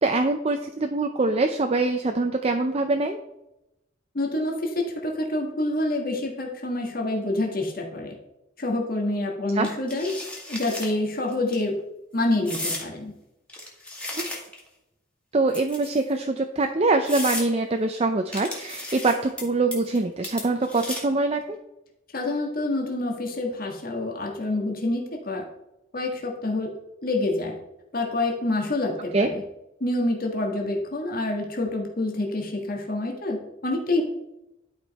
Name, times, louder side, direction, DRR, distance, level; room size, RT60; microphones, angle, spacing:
voice 1, 0.0-3.2 9.6-9.7 14.2-14.3 15.3-21.6 29.1-29.3, right 3 dB, 30° right, 6 dB, 0.5 m, -24 dB
voice 2, 4.1-8.1 8.6-10.1 10.5-11.7 12.1-13.1 22.1-25.4 25.9-26.7 27.0-27.6 27.9-29.4 29.8-34.0, left 2 dB, 50° left, 1 dB, 1.6 m, -27 dB
sound 1, 9.6-10.9 11.3-11.6 12.5-12.9 13.5-14.7 15.5-16.1 16.6-16.7 17.1-17.5 18.3-19.4 19.7-20.0 20.2-21.2, left 1 dB, 5° left, 1.8 m, -34 dB
11.5 x 5.2 x 4.1 m, 0.89 s
head